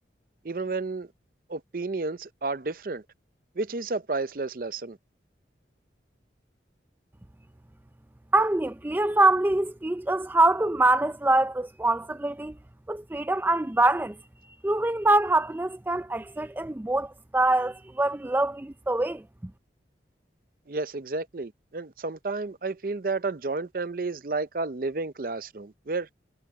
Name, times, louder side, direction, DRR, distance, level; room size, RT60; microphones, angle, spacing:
voice 1, 0.4-1.1 1.5-3.0 3.6-5.0 20.7-26.1, right 3 dB, 50° right, 0.6 m, -31 dB
voice 2, 8.3-12.6 12.9-14.2 14.6-19.2, right 2 dB, 10° right, 0.4 m, -24 dB
head